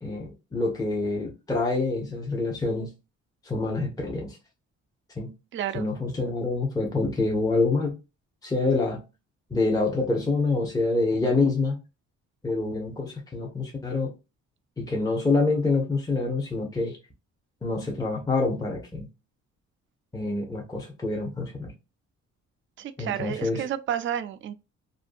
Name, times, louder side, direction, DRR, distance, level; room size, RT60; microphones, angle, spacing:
voice 1, 0.0-2.9 3.4-4.4 5.2-5.3 5.7-7.9 8.4-9.0 9.5-11.8 12.4-14.1 14.8-17.0 17.6-19.1 20.1-21.7 23.0-23.7, left 3 dB, 10° left, 0.7 m, -26 dB
voice 2, 5.5-5.9 22.8-24.5, right 10 dB, 40° right, 0.4 m, -31 dB
2.5 x 2.2 x 2.5 m
cardioid pair, 90°, 30 cm